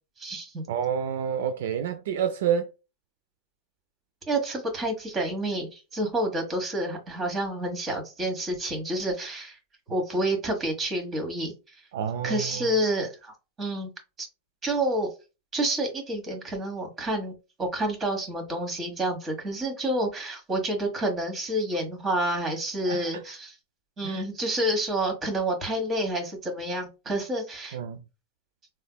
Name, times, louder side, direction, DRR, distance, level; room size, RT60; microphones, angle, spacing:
voice 1, 0.2-0.6 4.3-9.6 9.9-11.5 12.2-13.9 14.2-14.3 14.6-15.1 15.5-17.3 17.6-23.5 24.0-27.8, right 1 dB, 25° right, 1.4 m, -29 dB
voice 2, 0.7-2.7 11.9-12.7 22.9-23.2 24.0-24.2 27.7-28.0, right 8 dB, 75° right, 0.3 m, -29 dB
3.3 x 2.9 x 2.2 m
hypercardioid pair, 100°, 0 cm